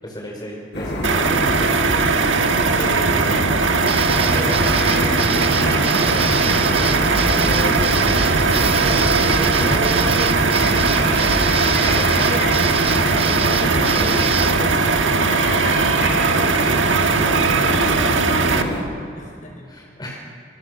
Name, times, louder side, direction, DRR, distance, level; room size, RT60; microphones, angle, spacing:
voice 1, 0.0-1.4 2.7-3.7 4.3-10.0 10.4-11.4 11.8-12.4 13.5-14.7 16.2-16.8 17.0-17.7 18.5-18.9 19.7-20.2, equal, 25° left, -2 dB, 4.3 m, -33 dB
sound 1, 0.7-18.8, left 1 dB, 60° left, 6.4 m, -25 dB
sound 2, 1.0-18.6, right 4 dB, 85° right, 1.3 m, -19 dB
sound 3, 3.9-14.5, right 5 dB, 30° right, 0.9 m, -27 dB
voice 2, 15.0-16.6 19.2-19.8, left 1 dB, 45° left, 0 dB, 5.5 m, -40 dB
25.5 x 25.5 x 6.6 m, 2.4 s
head